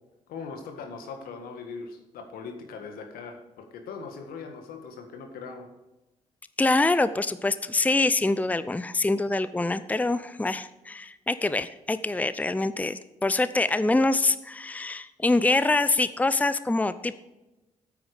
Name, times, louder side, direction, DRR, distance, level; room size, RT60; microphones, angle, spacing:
voice 1, 0.3-5.7, left 5 dB, 75° left, 5 dB, 1.6 m, -40 dB
voice 2, 6.6-17.1, left 2 dB, 10° left, 14 dB, 0.6 m, -25 dB
9.1 x 8.7 x 4.9 m, 0.99 s
hypercardioid pair, 45°, 15 cm